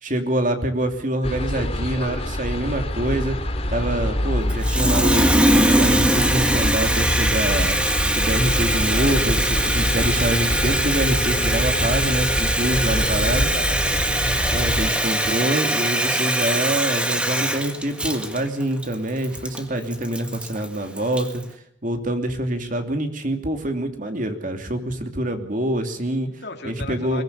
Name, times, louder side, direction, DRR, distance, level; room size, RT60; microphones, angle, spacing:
voice 1, 0.0-3.4 3.7-7.8 8.1-13.5 14.5-21.4 21.8-26.3 26.6-27.2, right 1 dB, 40° right, 6 dB, 2.9 m, -25 dB
sound 1, 1.2-14.9, left 1 dB, 30° left, 2.6 m, -25 dB
Water tap faucet, 4.5-21.4, right 1 dB, 5° right, 1.7 m, -22 dB
voice 2, 8.9-9.4 13.2-14.5 19.7-20.1 26.3-27.2, left 3 dB, 55° left, 4 dB, 3.5 m, -38 dB
23.0 x 19.0 x 7.0 m, 0.64 s
head